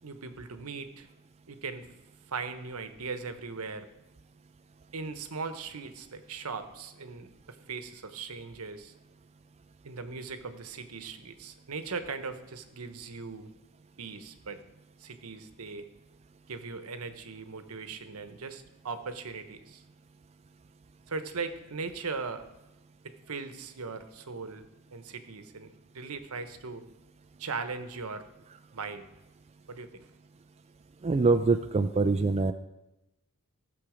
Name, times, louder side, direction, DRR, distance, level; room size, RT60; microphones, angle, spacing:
voice 1, 0.0-1.1 1.5-1.9 2.3-3.9 4.9-8.9 9.8-13.5 14.0-14.6 15.0-15.9 16.5-19.8 21.1-22.5 23.0-26.8 27.4-28.3 28.7-29.1 29.7-30.1, right 4 dB, 75° right, 9 dB, 1.0 m, -39 dB
voice 2, 31.0-32.5, right 3 dB, 30° right, 8 dB, 0.4 m, -24 dB
16.5 x 6.9 x 5.0 m, 0.98 s
head